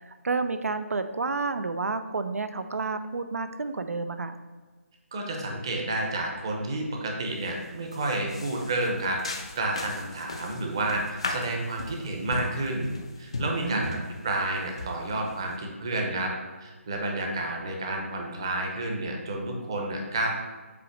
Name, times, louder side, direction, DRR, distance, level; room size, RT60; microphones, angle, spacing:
voice 1, 0.0-4.4 13.6-14.0, right 4 dB, 85° right, 10 dB, 0.7 m, -30 dB
voice 2, 5.1-12.9 13.2-14.0 14.2-16.3 16.6-20.3, right 2 dB, 20° right, 1 dB, 0.7 m, -30 dB
sound 1, 7.3-7.6 7.9-15.5, left 2 dB, 25° left, 0.4 m, -37 dB
8.3 x 3.0 x 6.2 m, 1.3 s
hypercardioid pair, 180°, 8 cm